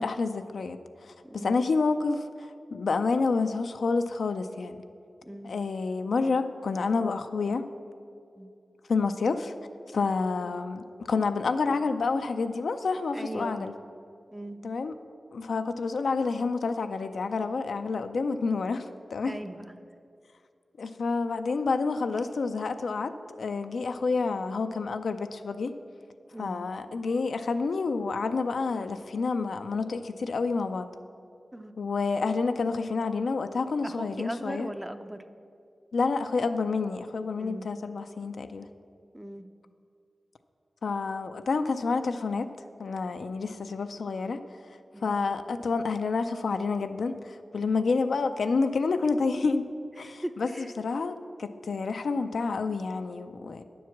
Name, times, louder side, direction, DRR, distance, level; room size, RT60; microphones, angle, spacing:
voice 1, 0.0-4.8 5.4-7.6 8.9-9.5 9.9-13.7 14.6-14.9 15.3-18.8 19.1-19.3 20.8-25.7 26.4-30.9 31.8-34.7 35.9-38.7 40.8-42.5 42.8-44.4 45.0-49.6 50.0-50.5 50.8-53.6, left 4 dB, 80° left, 8 dB, 0.4 m, -29 dB
voice 2, 1.2-1.6 5.2-5.5 8.4-8.5 13.1-13.7 14.3-14.6 19.3-19.7 26.3-26.6 31.5-31.7 33.8-35.2 37.4-37.7 39.1-39.5 44.9-45.2 50.0-50.7, right 1 dB, 10° right, 9 dB, 0.5 m, -38 dB
9.3 x 4.7 x 7.1 m, 2.4 s
cardioid pair, 55°, 0 cm